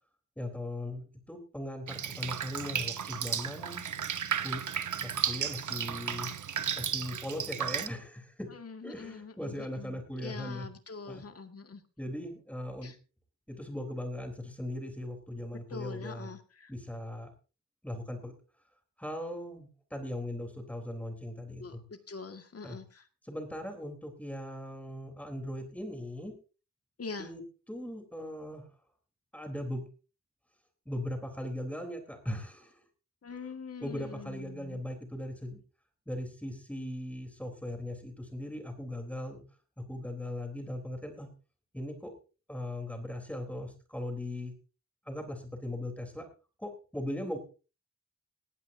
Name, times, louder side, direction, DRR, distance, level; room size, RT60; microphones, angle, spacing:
voice 1, 0.4-3.9 4.4-4.6 5.0-6.3 6.8-8.5 8.8-10.7 11.1-11.2 12.0-12.9 13.5-16.3 16.7-17.3 17.8-18.3 19.0-21.8 22.6-22.8 23.2-26.3 27.2-27.4 27.7-28.7 29.3-29.8 30.9-32.8 33.8-35.6 36.1-39.4 39.8-41.3 41.7-42.1 42.5-44.5 45.1-46.3 46.6-47.4, left 1 dB, 5° left, 4 dB, 3.8 m, -39 dB
Drip, 1.9-7.9, right 8 dB, 85° right, 1.0 m, -34 dB
voice 2, 8.5-11.8 12.8-13.0 15.5-16.7 21.6-23.0 27.0-27.3 33.2-34.8, left 4 dB, 55° left, 7 dB, 2.0 m, -44 dB
19.0 x 15.5 x 2.8 m, 0.34 s
wide cardioid pair, 150°, 29 cm